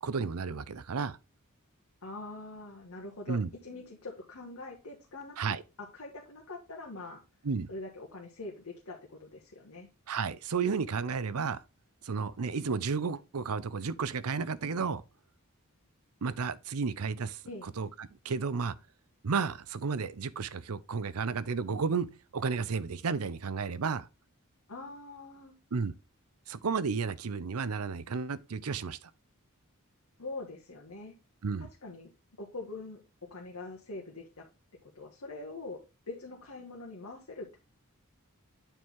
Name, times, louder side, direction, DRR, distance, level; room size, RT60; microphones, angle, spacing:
voice 1, 0.0-1.2 3.3-3.5 5.4-5.6 7.4-7.7 10.1-11.6 12.0-15.0 16.2-18.7 19.2-22.1 22.3-24.1 25.7-25.9 26.5-29.1 31.4-31.7, right 5 dB, 85° right, 0.6 m, -32 dB
voice 2, 2.0-5.4 5.8-7.2 7.7-9.9 17.5-17.7 24.7-25.5 30.2-31.1 31.8-32.1 32.4-33.0 33.3-34.5 34.9-35.8 36.1-37.6, left 2 dB, 80° left, 1.6 m, -43 dB
9.0 x 4.5 x 3.6 m
head